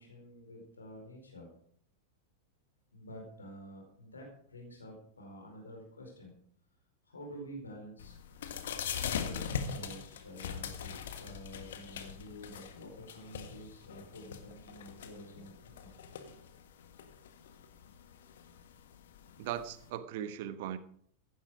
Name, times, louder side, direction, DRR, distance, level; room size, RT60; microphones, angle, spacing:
voice 1, 0.0-1.5 2.9-6.3 7.0-8.1 8.9-10.9 11.2-15.9, equal, 75° left, 1 dB, 4.6 m, -49 dB
sound 1, 8.0-19.9, left 7 dB, 60° left, 1.6 m, -42 dB
voice 2, 19.4-20.8, right 10 dB, 50° right, 12 dB, 1.2 m, -38 dB
15.5 x 11.0 x 5.0 m, 0.62 s
figure-of-eight pair, 90°, 0 cm